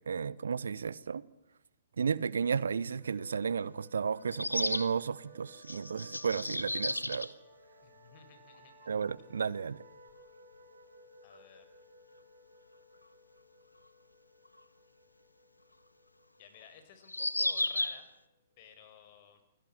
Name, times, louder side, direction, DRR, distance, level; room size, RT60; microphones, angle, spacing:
voice 1, 0.1-1.2 2.0-7.3 8.9-9.8, right 6 dB, 65° right, 0.9 m, -33 dB
sound 1, 2.8-2.9 4.3-4.9 5.6-7.3 8.5-8.6 8.8-8.9 11.3-11.4 14.6-14.7 17.0-18.0, left 2 dB, 85° left, 1.5 m, -33 dB
sound 2, 3.0-18.3, equal, 45° right, 7.5 m, -59 dB
voice 2, 7.8-8.7 11.2-11.6 16.4-18.1 18.6-19.4, left 8 dB, 40° left, 4.8 m, -56 dB
29.0 x 21.5 x 7.8 m
figure-of-eight pair, 120°, 0 cm